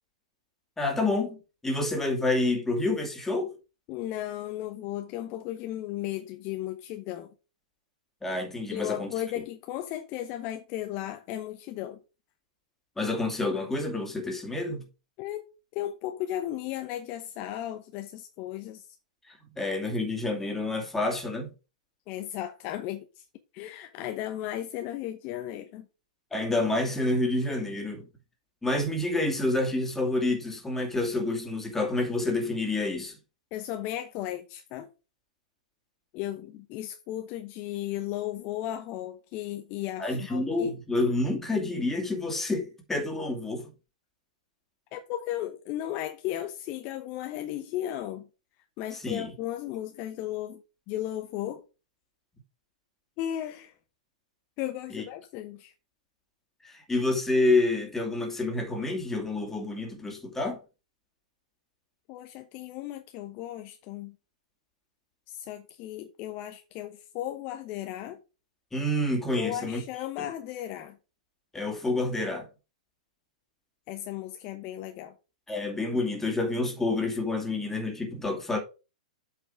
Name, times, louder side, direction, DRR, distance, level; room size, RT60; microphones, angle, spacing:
voice 1, 0.8-1.4 1.6-3.5 8.2-9.1 13.0-14.8 19.6-21.5 26.3-28.0 28.6-33.1 40.0-43.7 49.0-49.3 54.9-55.0 56.6-60.6 68.7-69.8 71.5-72.5 75.5-78.6, left 2 dB, 10° left, 2.6 m, -28 dB
voice 2, 3.9-7.3 8.7-12.0 15.2-15.4 15.7-18.9 22.1-23.2 23.5-25.9 33.5-34.9 36.1-40.7 44.9-48.3 48.8-51.6 53.2-53.7 54.6-55.7 62.1-64.2 65.3-68.2 69.4-71.0 73.9-75.1, left 13 dB, 40° left, 0.9 m, -35 dB
8.1 x 4.8 x 4.8 m
hypercardioid pair, 110°, 4 cm